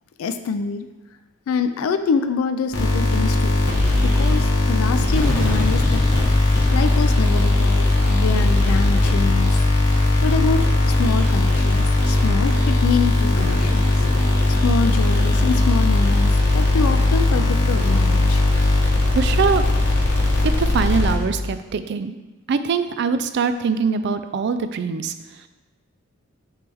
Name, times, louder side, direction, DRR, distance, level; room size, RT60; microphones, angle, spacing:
voice 1, 0.2-0.9 1.5-3.5 4.0-6.0 6.7-9.6 10.2-13.9 14.6-18.4, left 5 dB, 80° left, 9 dB, 0.3 m, -25 dB
sound 1, 2.7-21.5, left 2 dB, 55° left, 1.3 m, -18 dB
voice 2, 18.9-19.6 20.4-22.2 22.5-25.1, right 5 dB, 55° right, 11 dB, 0.3 m, -23 dB
9.1 x 3.2 x 3.4 m, 1.1 s
head